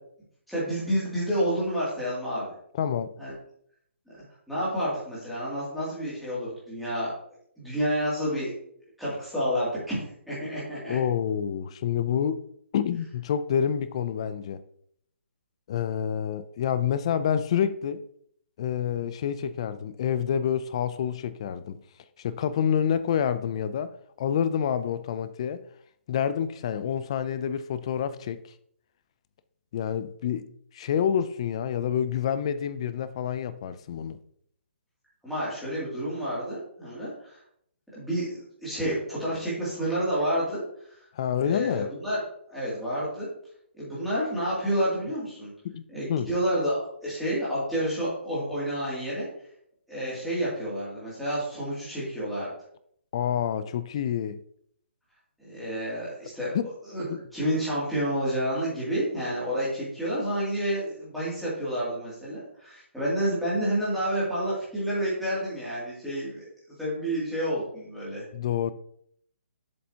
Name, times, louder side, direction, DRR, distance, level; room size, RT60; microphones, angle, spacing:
voice 1, 0.5-2.5 3.2-3.3 4.5-7.1 7.6-8.5 9.0-11.0 35.2-37.4 37.9-40.6 40.9-41.0 41.4-42.2 42.5-43.3 43.8-45.5 45.9-49.3 49.9-52.5 55.4-56.5 56.9-57.0 57.3-66.5 66.8-68.2, equal, ahead, 2.5 m, -29 dB
voice 2, 2.7-3.1 10.9-12.4 12.7-14.6 15.7-18.0 18.6-21.8 22.2-23.9 24.2-25.6 26.1-28.4 29.7-30.5 30.7-34.2 41.1-41.9 45.6-45.8 46.1-46.3 53.1-54.4 56.5-56.7 57.1-57.2 68.3-68.7, left 8 dB, 25° left, 0.3 m, -28 dB
7.5 x 6.8 x 2.8 m
hypercardioid pair, 170°, 7 cm